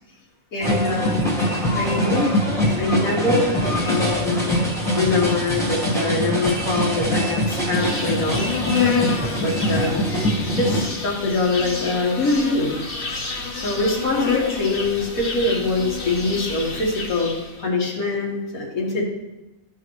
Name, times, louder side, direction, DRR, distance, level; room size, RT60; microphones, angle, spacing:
voice 1, 0.5-1.2 1.7-2.3 2.6-4.7 4.9-8.5 9.4-10.1 10.5-12.8 13.6-17.3 17.6-19.0, left 2 dB, 90° left, -3 dB, 2.1 m, -23 dB
sound 1, 0.6-10.9, equal, ahead, 1.4 m, -23 dB
Insect, 7.7-17.6, left 5 dB, 45° left, 1.2 m, -28 dB
12.5 x 5.7 x 3.2 m, 0.99 s
omnidirectional pair, 1.4 m